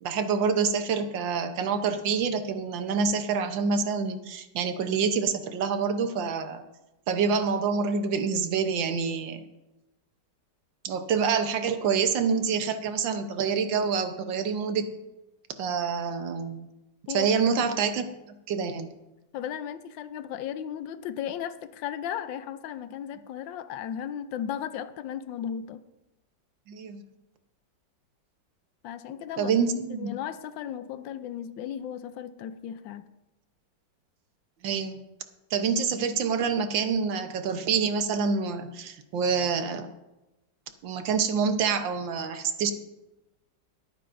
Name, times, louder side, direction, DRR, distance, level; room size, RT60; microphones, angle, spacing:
voice 1, 0.0-6.6 7.1-9.4 10.8-14.9 15.6-16.7 17.1-18.1 18.5-18.9 26.7-27.0 29.4-30.1 34.6-35.0 35.5-39.9 40.8-42.7, right 5 dB, 85° right, 8 dB, 1.7 m, -27 dB
voice 2, 19.3-25.8 28.8-29.5 29.9-33.1, left 9 dB, 85° left, 12 dB, 1.4 m, -35 dB
22.0 x 9.1 x 2.6 m, 0.99 s
omnidirectional pair, 2.0 m